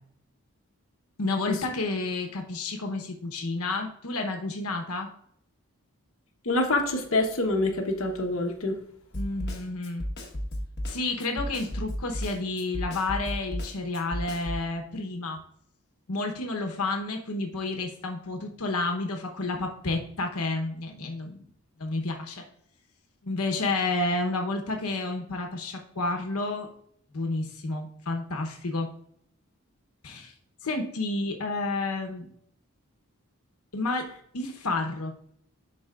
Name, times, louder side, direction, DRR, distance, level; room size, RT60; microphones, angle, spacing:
voice 1, 1.2-5.1 9.1-10.0 10.9-15.4 16.1-21.5 21.8-22.5 23.2-26.7 27.1-28.9 30.0-30.3 30.6-32.3 33.7-34.1 34.3-35.1, left 2 dB, 85° left, 4 dB, 1.0 m, -30 dB
voice 2, 6.4-8.8, left 2 dB, 65° left, 1 dB, 1.1 m, -26 dB
Snare drum, 9.1-14.6, equal, 50° left, 1.3 m, -33 dB
11.0 x 4.2 x 2.4 m, 0.67 s
head